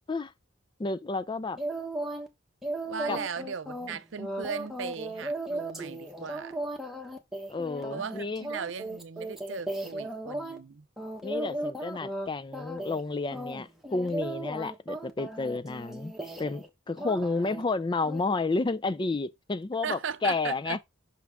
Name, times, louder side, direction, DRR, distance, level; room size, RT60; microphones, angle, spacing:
voice 1, 0.8-1.6 3.1-3.2 7.5-8.5 11.2-16.1 16.4-20.8, left 3 dB, 25° left, 0.4 m, -31 dB
sound 1, 1.6-2.3 2.6-10.6 11.0-12.3 12.5-13.0 13.3-16.7 17.0-17.6 18.0-18.2, right 1 dB, ahead, 1.1 m, -36 dB
voice 2, 2.9-6.6 7.9-10.8 19.8-20.8, right 6 dB, 70° right, 0.5 m, -37 dB
6.0 x 5.8 x 3.5 m
head